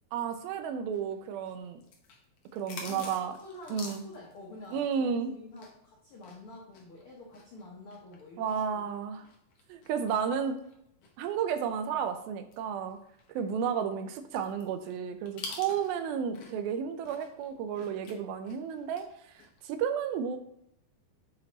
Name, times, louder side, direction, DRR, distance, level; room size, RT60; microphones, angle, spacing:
voice 1, 0.1-1.8 2.5-3.3 3.7-4.0 4.7-5.3 8.4-9.3 9.7-10.6 11.2-13.0 13.3-19.1 19.6-20.4, right 7 dB, 85° right, 8 dB, 2.5 m, -32 dB
sound 1, 0.9-5.9 6.2-11.7 12.1-12.2 12.5-16.7 17.0-19.0 19.3-19.6, left 4 dB, 65° left, 1.6 m, -48 dB
voice 2, 2.8-9.0, left 2 dB, 80° left, -3 dB, 1.2 m, -48 dB
8.2 x 3.4 x 4.0 m, 0.73 s
omnidirectional pair, 4.2 m